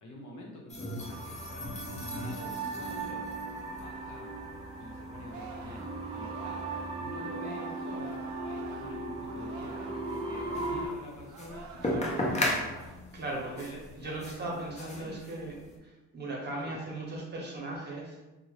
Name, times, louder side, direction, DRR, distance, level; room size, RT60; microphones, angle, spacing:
voice 1, 0.0-3.3 3.7-4.3 4.8-12.7 13.1-14.2 14.6-15.2 16.6-16.8, left 1 dB, 75° left, -1 dB, 0.8 m, -47 dB
sound 1, 0.7-15.8, left 1 dB, 25° left, 0.6 m, -39 dB
sound 2, 1.0-10.9, right 2 dB, 20° right, 0.5 m, -38 dB
Singing, 5.3-10.0 10.3-13.1 13.5-13.8, right 5 dB, 70° right, 0.4 m, -49 dB
voice 2, 11.8-12.2 13.1-15.5 15.8-18.2, right 2 dB, 35° right, -2 dB, 0.9 m, -38 dB
2.7 x 2.1 x 3.1 m, 1.1 s
cardioid pair, 90°, 30 cm